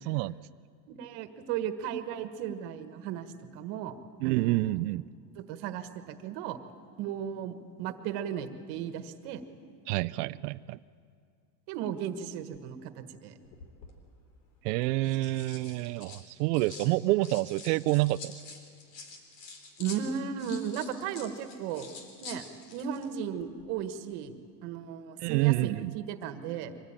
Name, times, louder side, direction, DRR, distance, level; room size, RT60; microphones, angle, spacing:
voice 1, 0.0-0.4 4.2-5.0 9.9-10.8 14.6-18.3 25.2-25.9, right 19 dB, 80° right, 14 dB, 0.6 m, -28 dB
voice 2, 0.9-3.3 3.5-4.0 4.2-4.8 5.3-6.6 7.0-9.4 11.7-13.3 19.8-21.9 22.2-22.4 22.7-24.3 24.6-26.7, right 8 dB, 55° right, 9 dB, 1.5 m, -35 dB
sound 1, 13.4-13.9 14.8-16.9 17.2-23.1 23.4-23.6, left 4 dB, 85° left, 3.7 m, -47 dB
24.5 x 18.0 x 8.9 m, 2.2 s
supercardioid pair, 145°, 47 cm